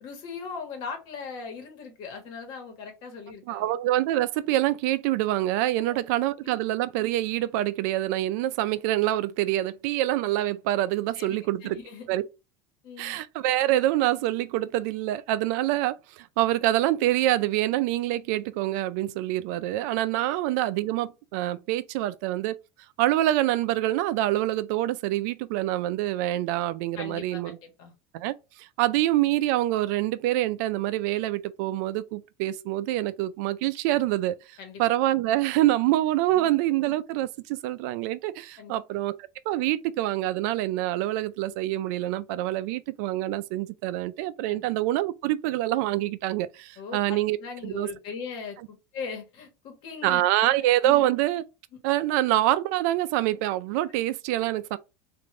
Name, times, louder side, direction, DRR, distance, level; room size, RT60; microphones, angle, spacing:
voice 1, 0.0-3.7 5.8-6.0 11.1-12.2 12.8-13.2 27.0-27.9 34.6-34.8 36.3-36.5 38.6-38.8 44.5-44.6 46.8-50.2 50.5-51.1 51.7-51.8 54.4-54.5, left 5 dB, 55° left, 1.3 m, -40 dB
voice 2, 3.5-11.8 12.1-12.2 13.0-22.6 23.0-27.6 28.1-39.1 39.5-47.4 47.6-47.9 50.0-51.4 51.8-54.8, right 15 dB, 70° right, 0.4 m, -26 dB
3.3 x 2.6 x 3.6 m
supercardioid pair, 150°, 9 cm